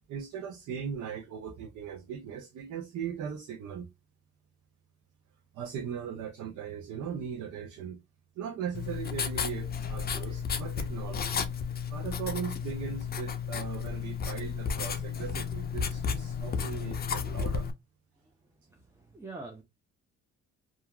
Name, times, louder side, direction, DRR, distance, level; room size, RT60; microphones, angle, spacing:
voice 1, 0.1-3.9 5.5-8.0 8.4-11.5 11.9-17.7, right 8 dB, 75° right, 0.6 m, -39 dB
Writing, 8.7-17.7, left 6 dB, 30° left, 0.5 m, -33 dB
voice 2, 18.7-19.6, right 3 dB, 10° right, 0.6 m, -44 dB
2.8 x 2.5 x 2.4 m
cardioid pair, 90°, 30 cm